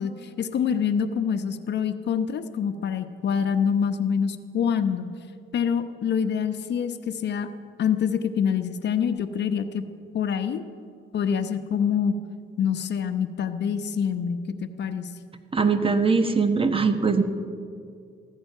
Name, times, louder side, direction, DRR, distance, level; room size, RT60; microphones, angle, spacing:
voice 1, 0.0-5.1 5.5-7.5 7.8-9.8 10.1-10.6 11.1-12.1 12.6-15.1, left 7 dB, 60° left, 9 dB, 0.9 m, -26 dB
voice 2, 15.5-17.2, right 4 dB, 25° right, 8 dB, 1.3 m, -21 dB
15.0 x 14.0 x 6.7 m, 2.3 s
cardioid pair, 90°, 20 cm